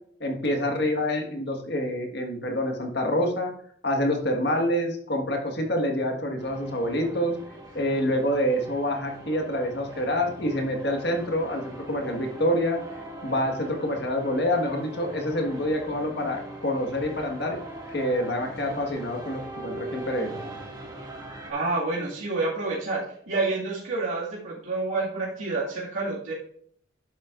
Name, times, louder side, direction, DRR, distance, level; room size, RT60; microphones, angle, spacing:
voice 1, 0.2-3.5 3.8-7.4 7.7-12.8 13.2-17.6 17.9-20.4, equal, 55° left, 2 dB, 1.6 m, -27 dB
sound 1, 6.4-21.5, right 1 dB, 20° right, 2.0 m, -41 dB
voice 2, 21.5-26.3, right 3 dB, 80° right, -7 dB, 2.1 m, -28 dB
11.0 x 7.5 x 2.5 m, 0.63 s
head